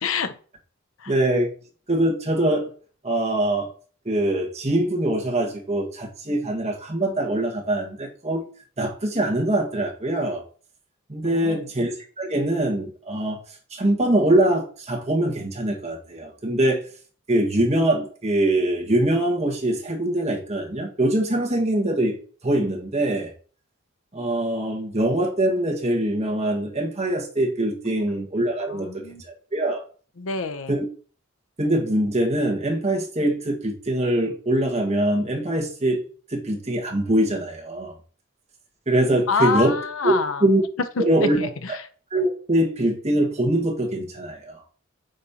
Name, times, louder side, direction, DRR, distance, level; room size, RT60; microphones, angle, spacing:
voice 1, 0.0-0.3 1.0-1.1 11.2-11.7 27.9-28.0 28.7-29.2 30.2-30.8 39.3-40.5 41.0-41.9, left 5 dB, 75° left, 10 dB, 0.7 m, -27 dB
voice 2, 1.1-1.5 1.9-2.7 3.0-3.7 4.0-8.4 8.8-10.4 11.1-13.4 13.7-16.9 17.3-22.2 22.4-23.3 24.1-28.9 29.2-29.8 30.7-30.8 31.6-36.0 36.3-37.9 38.9-39.8 40.0-40.1 40.4-40.6 41.0-41.4 42.1-44.6, right 1 dB, 30° right, 0 dB, 1.6 m, -23 dB
8.6 x 5.4 x 2.8 m, 0.42 s
head